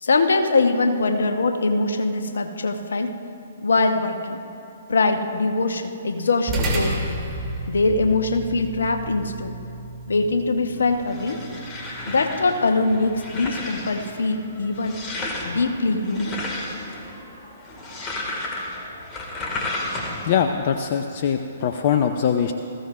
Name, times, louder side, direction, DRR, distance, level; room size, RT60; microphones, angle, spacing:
voice 1, 0.0-3.2 3.6-4.4 4.9-6.9 7.7-9.6 10.1-11.4 12.1-15.0 15.4-16.3, left 3 dB, 70° left, 6 dB, 1.1 m, -22 dB
sound 1, 6.5-15.1, right 1 dB, 20° right, 2.8 m, -33 dB
sound 2, 10.8-20.4, left 2 dB, 20° left, 2.0 m, -33 dB
voice 2, 20.2-22.5, left 8 dB, 45° left, 6 dB, 0.6 m, -22 dB
20.0 x 15.0 x 2.5 m, 2.6 s
figure-of-eight pair, 125°, 0 cm